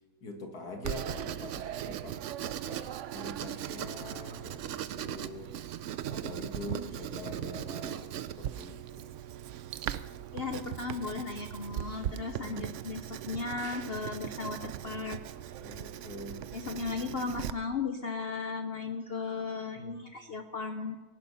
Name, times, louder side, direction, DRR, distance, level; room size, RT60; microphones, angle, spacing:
voice 1, 0.2-2.8 3.1-5.5 6.1-9.2 12.4-12.8 15.6-16.4 19.7-20.0, left 2 dB, 80° left, 3 dB, 2.5 m, -44 dB
Writing, 0.8-17.5, right 11 dB, 65° right, 0.8 m, -39 dB
voice 2, 10.3-15.2 16.5-21.0, left 4 dB, 50° left, 6 dB, 0.8 m, -36 dB
18.5 x 11.0 x 5.6 m, 1.2 s
omnidirectional pair, 1.6 m